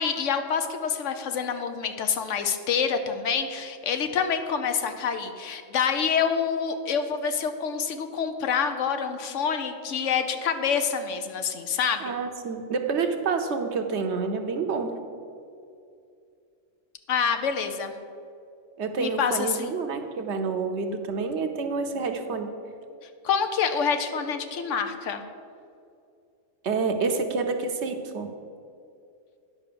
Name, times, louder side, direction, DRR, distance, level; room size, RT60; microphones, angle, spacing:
voice 1, 0.0-12.1 17.1-17.9 19.0-19.7 23.2-25.2, left 6 dB, 75° left, 8 dB, 1.0 m, -27 dB
voice 2, 12.0-14.9 18.8-22.5 26.6-28.3, right 4 dB, 65° right, 6 dB, 1.0 m, -28 dB
9.8 x 5.6 x 6.8 m, 2.5 s
omnidirectional pair, 1.3 m